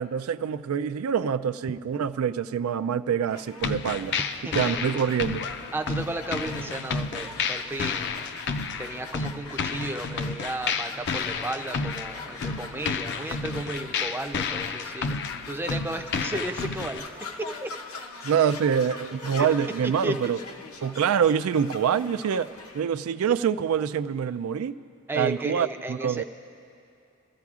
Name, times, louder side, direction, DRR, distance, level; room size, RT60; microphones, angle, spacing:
voice 1, 0.0-4.2 4.5-5.4 18.2-20.4 20.8-24.8 25.2-26.2, right 7 dB, 85° right, 12 dB, 0.3 m, -25 dB
sound 1, 3.3-22.8, left 3 dB, 85° left, 0.9 m, -43 dB
sound 2, 3.6-17.0, left 5 dB, 55° left, 0.5 m, -31 dB
voice 2, 4.4-4.8 5.7-8.1 8.8-15.2 15.5-17.1 17.4-17.7 19.3-19.5 19.8-20.1 25.1-26.2, right 2 dB, 10° right, 5 dB, 0.5 m, -34 dB
23.5 x 14.0 x 2.4 m, 2.5 s
head